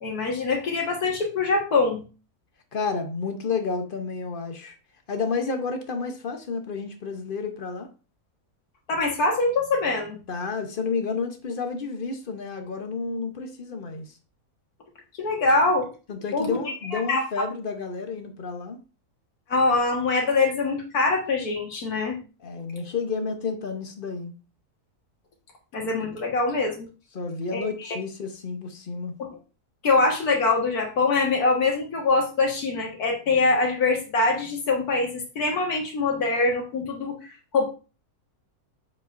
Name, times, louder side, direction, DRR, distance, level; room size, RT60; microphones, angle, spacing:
voice 1, 0.0-2.0 8.9-10.2 15.2-15.9 16.3-16.6 16.9-17.2 19.5-22.2 25.7-26.9 27.5-27.7 29.2-29.3 29.8-37.2 37.5-37.6, left 3 dB, 80° left, 2.0 m, -23 dB
voice 2, 2.7-4.8 5.1-7.9 10.3-14.2 16.1-18.8 22.4-24.3 27.1-29.1, left 4 dB, 40° left, 0.9 m, -31 dB
7.2 x 5.2 x 2.6 m
omnidirectional pair, 1.6 m